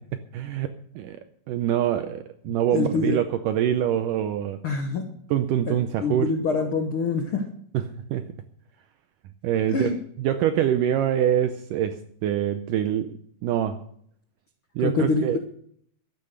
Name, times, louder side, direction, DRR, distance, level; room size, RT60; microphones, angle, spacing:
voice 1, 0.3-1.2 1.5-4.6 5.3-6.3 7.7-8.3 9.4-9.9 10.2-13.8 14.8-15.4, right 10 dB, 80° right, 9 dB, 1.9 m, -25 dB
voice 2, 2.5-3.2 4.6-5.0 5.7-5.8 6.0-7.4 9.7-10.0 14.8-15.4, left 4 dB, 80° left, 5 dB, 1.2 m, -25 dB
12.0 x 10.5 x 6.6 m, 0.65 s
omnidirectional pair, 4.4 m